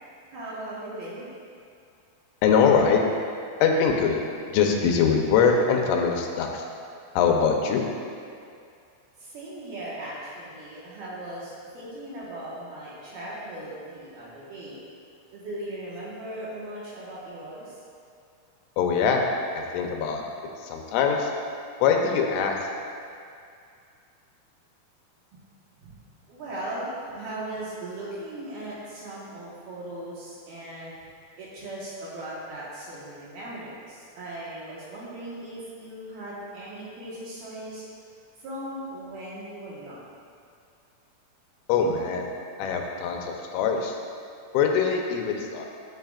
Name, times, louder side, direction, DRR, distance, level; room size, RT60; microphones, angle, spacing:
voice 1, 0.3-1.3 9.2-14.8 15.3-17.8 25.8-25.9 26.3-30.9 31.4-37.8 38.4-40.0, right 1 dB, 65° right, -8 dB, 2.8 m, -38 dB
voice 2, 2.4-3.0 3.6-4.2 4.5-6.7 7.2-7.8 18.8-19.3 19.5-20.2 20.6-21.3 21.8-22.6 41.7-42.3 42.6-44.0 44.5-45.7, left 6 dB, 85° left, 2 dB, 3.3 m, -22 dB
13.5 x 8.2 x 2.5 m, 2.3 s
omnidirectional pair, 5.6 m